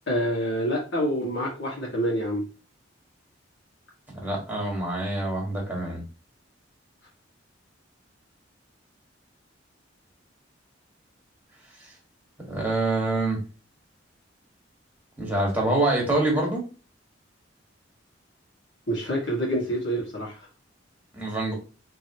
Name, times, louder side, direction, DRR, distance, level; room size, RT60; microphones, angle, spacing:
voice 1, 0.1-2.4 18.9-20.4, equal, 65° left, -4 dB, 1.6 m, -27 dB
voice 2, 4.1-6.0 11.8-11.9 12.5-13.4 15.2-16.6 21.1-21.5, right 2 dB, 10° right, -1 dB, 1.7 m, -26 dB
4.8 x 3.0 x 3.0 m, 0.33 s
head